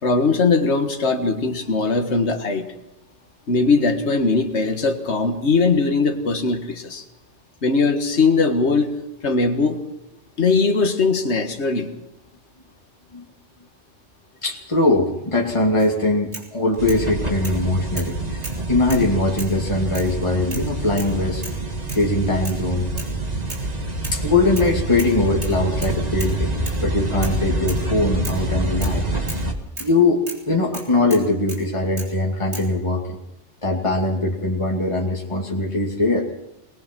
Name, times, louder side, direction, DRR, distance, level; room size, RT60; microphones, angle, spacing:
voice 1, 0.0-2.7 3.5-7.0 7.6-8.9 9.2-9.8 10.4-11.9, left 4 dB, 70° left, 4 dB, 1.9 m, -20 dB
voice 2, 14.4-18.4 18.7-21.4 21.9-22.9 24.1-26.5 26.8-29.0 29.8-33.2 33.6-36.3, left 2 dB, 25° left, -1 dB, 2.6 m, -21 dB
sound 1, 15.8-15.9 16.3-17.0 17.4-17.6 18.0-18.1 18.4-19.1 19.4-19.6 19.9-20.1 20.5-20.7 21.0-21.2 21.4-21.6 21.9-22.1 22.4-22.6 23.0-23.1 23.5-23.7 24.0-24.7 25.0-25.2 25.4-26.4 26.7-26.8 27.2-27.4 27.7-27.9 28.2-28.4 28.8-29.0 29.3-29.5 29.8-29.9 30.3-30.4 30.7-31.6 32.0-32.1 32.5-32.7, right 2 dB, 65° right, 3.9 m, -36 dB
sound 2, 16.8-29.5, right 2 dB, 35° right, 2.0 m, -26 dB
21.0 x 20.5 x 6.1 m, 0.86 s
omnidirectional pair, 1.2 m